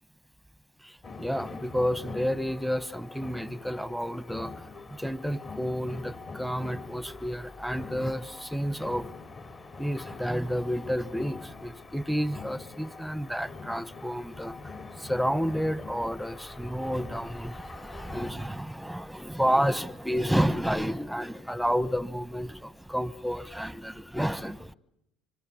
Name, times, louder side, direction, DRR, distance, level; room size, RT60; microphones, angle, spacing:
voice 1, 0.8-9.1 9.8-14.6 15.0-24.7, equal, ahead, 1.2 m, -30 dB
sound 1, 1.0-18.3, left 4 dB, 35° left, 4.0 m, -44 dB
25.5 x 25.5 x 8.5 m
hypercardioid pair, 80°, 0 cm